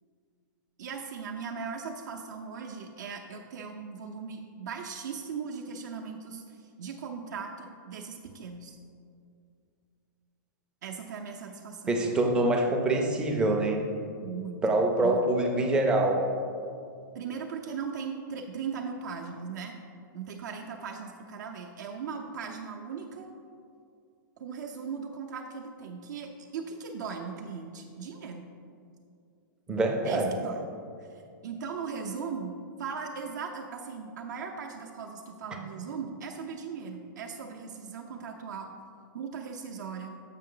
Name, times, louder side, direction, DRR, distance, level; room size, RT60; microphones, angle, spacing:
voice 1, 0.8-8.8 10.8-11.9 14.2-15.2 17.1-19.8 20.1-23.3 24.4-28.5 30.0-30.6 31.0-38.7 39.1-40.1, right 6 dB, 60° right, 1 dB, 0.6 m, -38 dB
voice 2, 11.9-13.8 14.6-16.2 29.7-30.4, right 2 dB, 10° right, 2 dB, 0.4 m, -25 dB
7.4 x 5.3 x 3.8 m, 2.4 s
hypercardioid pair, 165°, 11 cm